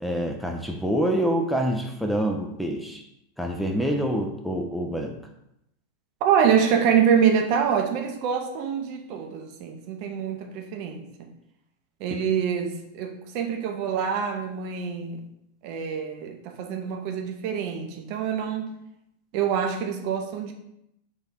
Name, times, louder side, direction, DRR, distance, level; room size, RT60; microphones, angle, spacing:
voice 1, 0.0-3.0 3.4-5.2, equal, ahead, 2 dB, 0.5 m, -26 dB
voice 2, 6.2-11.3 12.0-15.2 15.6-18.7 19.3-20.5, right 7 dB, 45° right, 5 dB, 0.6 m, -25 dB
3.4 x 3.4 x 4.3 m, 0.81 s
figure-of-eight pair, 90°, 0 cm